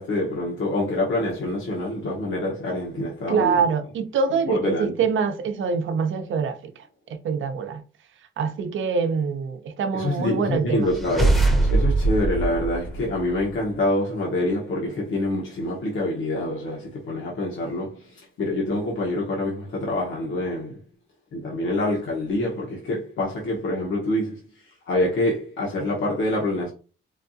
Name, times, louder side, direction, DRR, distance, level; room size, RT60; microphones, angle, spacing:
voice 1, 0.0-3.6 4.5-4.9 9.9-20.8 21.3-26.7, left 1 dB, 80° left, 1.2 m, -26 dB
voice 2, 3.3-6.7 7.1-7.8 8.4-10.9, right 5 dB, 75° right, 0.7 m, -25 dB
sound 1, 10.8-13.6, right 2 dB, ahead, 0.7 m, -22 dB
4.6 x 2.3 x 2.7 m
wide cardioid pair, 135°, 20 cm